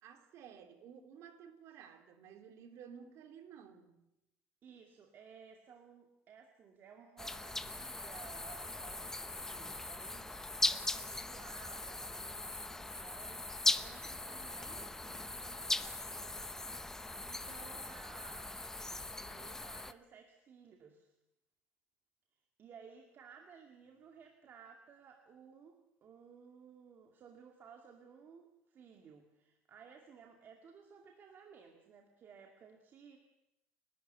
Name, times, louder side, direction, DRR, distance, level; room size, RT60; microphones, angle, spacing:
voice 1, 0.0-4.0 17.4-17.6, right 7 dB, 65° right, 3.2 m, -54 dB
voice 2, 4.6-18.5 18.9-21.1 22.3-33.2, right 6 dB, 40° right, 2.3 m, -57 dB
sound 1, 7.2-19.9, left 2 dB, 10° left, 0.8 m, -39 dB
29.5 x 12.0 x 8.2 m
cardioid pair, 130°, 5 cm